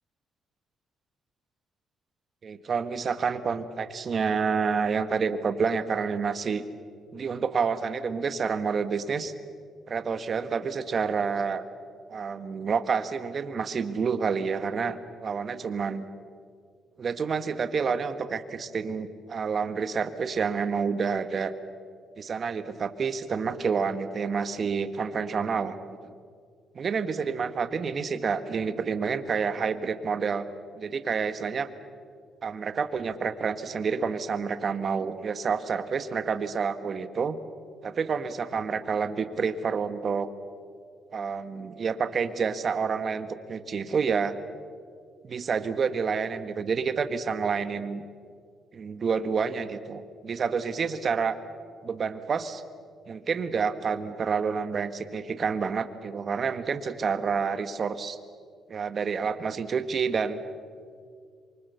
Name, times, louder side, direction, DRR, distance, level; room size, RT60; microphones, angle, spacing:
voice 1, 2.4-6.6 7.1-9.3 9.9-11.6 12.1-16.0 17.0-21.5 22.2-26.1 26.7-30.4 30.7-31.7 32.4-37.4 37.8-40.3 41.1-44.3 45.2-48.0 48.7-51.4 51.8-52.6 53.1-58.2 58.7-60.4, right 5 dB, 45° right, 11 dB, 1.6 m, -28 dB
27.0 x 24.5 x 7.0 m, 2.1 s
cardioid pair, 90°, 0 cm